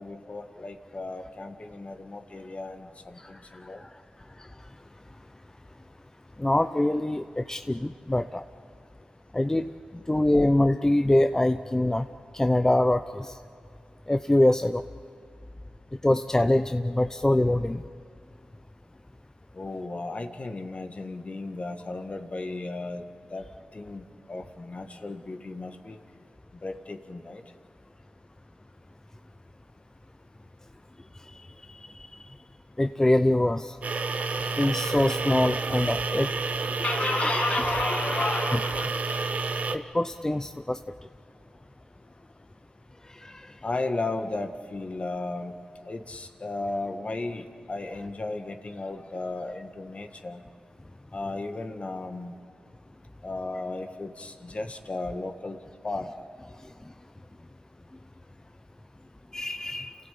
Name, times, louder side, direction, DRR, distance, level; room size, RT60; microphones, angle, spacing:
voice 1, 0.0-3.8 19.5-23.5 23.7-26.0 26.6-27.4 36.8-39.3 43.6-45.5 45.8-50.4 51.1-52.3 53.2-55.6 55.8-56.1, left 2 dB, 45° left, 1.8 m, -34 dB
voice 2, 6.4-8.4 9.3-9.7 10.1-12.1 12.3-13.4 14.1-14.8 16.0-17.8 31.7-31.8 32.8-33.8 34.6-36.3 39.7-40.8 43.1-43.5 59.3-60.0, left 1 dB, 20° left, 0.7 m, -24 dB
sound 1, 33.8-39.8, right 4 dB, 60° right, 1.1 m, -29 dB
28.0 x 15.5 x 8.6 m
supercardioid pair, 40°, 3 cm